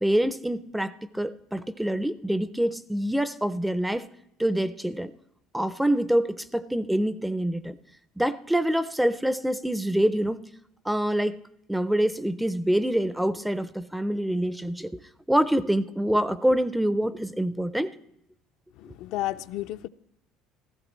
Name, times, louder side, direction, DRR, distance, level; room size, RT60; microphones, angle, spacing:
voice 1, 0.0-4.1 4.4-5.1 5.5-7.8 8.2-10.4 10.9-11.4 11.7-14.9 15.3-17.9, right 1 dB, 5° right, 0.4 m, -26 dB
voice 2, 18.8-19.9, left 15 dB, 65° left, 0.4 m, -32 dB
16.0 x 14.0 x 3.0 m
cardioid pair, 160°, 0 cm